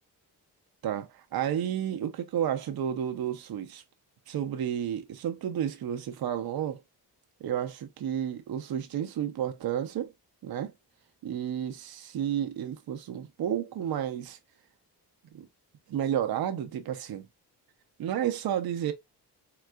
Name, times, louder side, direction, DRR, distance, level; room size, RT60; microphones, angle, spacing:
voice 1, 0.8-3.8 4.3-6.8 7.4-10.1 10.4-10.7 11.2-14.4 15.3-15.5 15.9-17.3 18.0-18.9, right 10 dB, 65° right, 0.6 m, -31 dB
3.8 x 2.3 x 2.2 m
cardioid pair, 100°, 40 cm